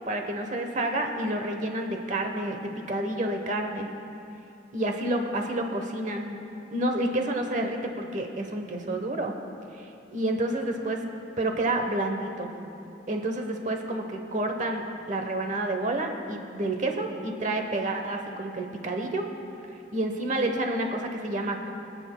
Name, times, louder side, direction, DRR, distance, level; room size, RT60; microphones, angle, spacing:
voice 1, 0.1-3.9 4.7-6.4 6.7-9.3 9.7-11.0 11.4-12.5 13.1-19.3 19.7-21.7, right 1 dB, 40° right, 4 dB, 1.0 m, -29 dB
24.5 x 9.2 x 2.2 m, 2.8 s
head